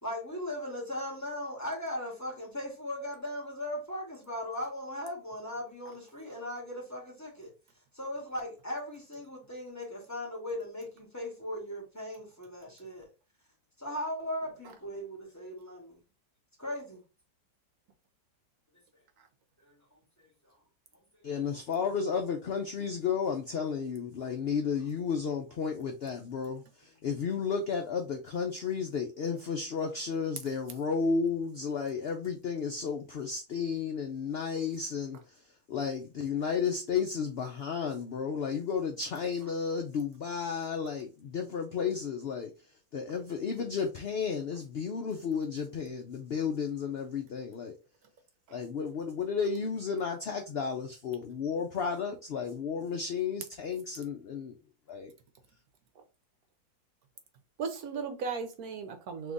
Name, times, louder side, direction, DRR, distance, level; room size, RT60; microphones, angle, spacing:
voice 1, 0.0-7.5 7.9-13.1 13.8-16.0 16.6-17.0 19.6-19.8 20.2-20.3 24.2-24.3, left 1 dB, 10° left, 1.9 m, -38 dB
voice 2, 21.2-35.2 35.7-42.5 42.9-47.7 48.5-53.8 54.3-54.5 54.9-55.1, left 6 dB, 65° left, 0.6 m, -33 dB
voice 3, 57.6-59.3, right 5 dB, 70° right, 1.1 m, -37 dB
3.6 x 2.9 x 3.9 m
omnidirectional pair, 1.7 m